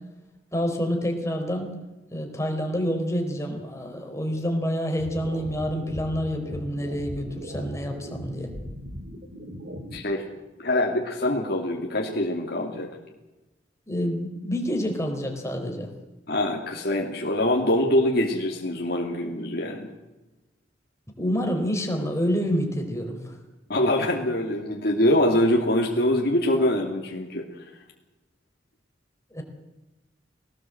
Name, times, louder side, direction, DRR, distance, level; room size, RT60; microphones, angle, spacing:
voice 1, 0.5-1.7 2.1-8.5 13.9-15.9 21.2-23.4 29.3-29.4, equal, 15° left, 2 dB, 4.3 m, -28 dB
sound 1, 5.0-10.0, equal, 60° right, 3.1 m, -38 dB
voice 2, 9.9-10.2 10.6-13.0 16.3-19.9 23.7-27.5, left 1 dB, 60° left, 0 dB, 2.8 m, -24 dB
21.5 x 18.0 x 8.0 m, 1.1 s
head